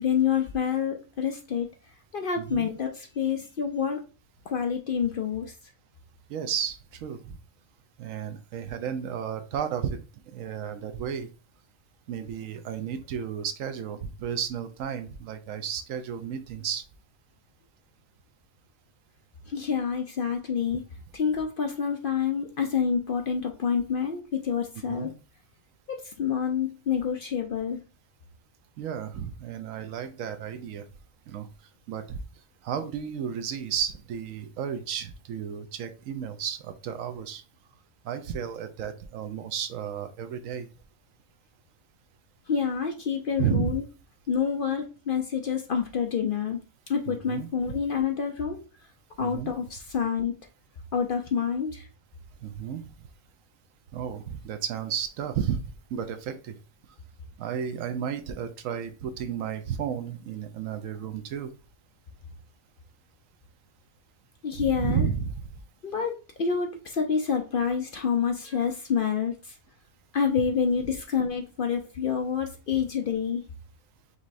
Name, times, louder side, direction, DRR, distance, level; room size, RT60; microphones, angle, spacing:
voice 1, 0.0-1.7 2.1-4.0 4.5-5.5 19.5-20.8 21.1-25.1 25.9-27.8 42.5-43.8 44.3-46.6 46.9-48.6 49.2-50.3 50.9-51.8 64.4-65.1 65.8-69.5 70.1-73.4, left 7 dB, 55° left, 4 dB, 0.6 m, -27 dB
voice 2, 2.4-2.7 6.3-7.2 8.0-10.0 10.3-11.3 12.1-16.8 24.9-25.1 28.8-30.9 31.3-31.5 31.9-32.2 32.6-37.4 38.0-40.7 43.4-43.8 47.1-47.8 49.2-49.5 52.4-52.8 53.9-55.6 55.9-56.5 57.4-61.5 64.6-65.5, right 8 dB, 85° right, 9 dB, 1.0 m, -32 dB
5.3 x 3.1 x 2.6 m, 0.33 s
omnidirectional pair, 1.4 m